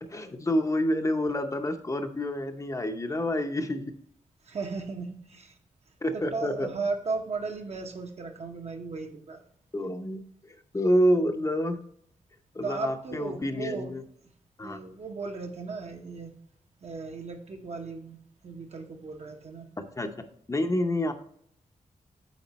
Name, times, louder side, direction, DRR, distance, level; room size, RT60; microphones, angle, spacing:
voice 1, 0.0-3.8 6.0-6.7 9.7-11.8 12.5-14.0 14.6-14.8 19.8-20.1 20.5-21.1, equal, 25° left, 6 dB, 0.7 m, -28 dB
voice 2, 4.4-5.6 6.1-9.4 12.6-13.9 14.6-16.3 16.8-18.2 18.4-19.7, right 4 dB, 55° right, 4 dB, 1.0 m, -36 dB
8.5 x 3.8 x 4.1 m, 0.66 s
cardioid pair, 85°, 13 cm